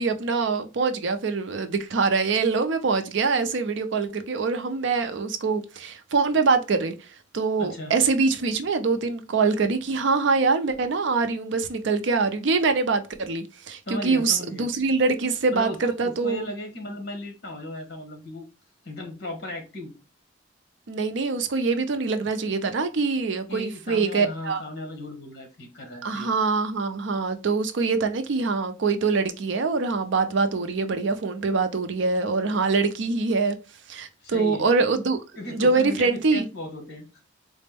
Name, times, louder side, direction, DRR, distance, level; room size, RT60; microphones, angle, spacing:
voice 1, 0.0-6.9 7.3-16.5 20.9-24.6 26.0-33.6 33.9-35.2 35.5-36.5, right 4 dB, 70° right, 0.5 m, -24 dB
voice 2, 7.6-7.9 13.8-14.7 15.5-18.5 18.8-19.9 23.5-26.3 34.2-34.7 35.3-37.2, left 1 dB, 55° left, 1.3 m, -36 dB
4.1 x 2.1 x 3.3 m
head